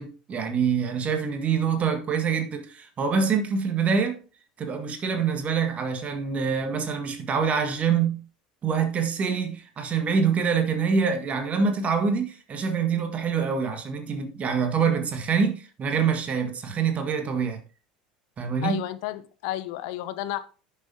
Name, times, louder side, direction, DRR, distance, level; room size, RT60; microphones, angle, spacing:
voice 1, 0.0-4.2 4.6-8.2 8.6-17.6 18.4-18.8, right 6 dB, 35° right, 1.8 m, -25 dB
voice 2, 18.6-20.4, left 13 dB, 60° left, 0.9 m, -31 dB
11.0 x 6.9 x 2.8 m
figure-of-eight pair, 70°, 4 cm